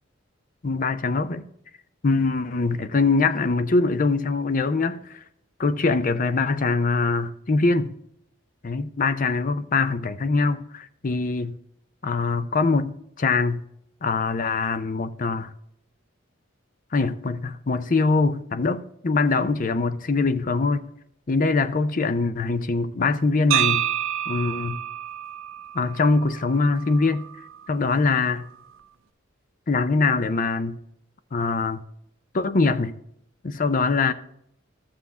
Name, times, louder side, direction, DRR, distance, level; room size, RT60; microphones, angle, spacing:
voice 1, 0.6-1.5 2.0-5.2 5.6-7.9 8.6-11.6 12.0-13.6 14.0-15.5 16.9-20.9 21.3-23.9 24.3-24.8 25.7-27.3 27.7-28.5 29.7-30.8 31.3-31.8 32.3-32.9 33.4-34.1, left 3 dB, 45° left, 0.5 m, -23 dB
sound 1, 23.5-27.6, right 12 dB, 90° right, 0.6 m, -28 dB
13.5 x 6.9 x 3.6 m
head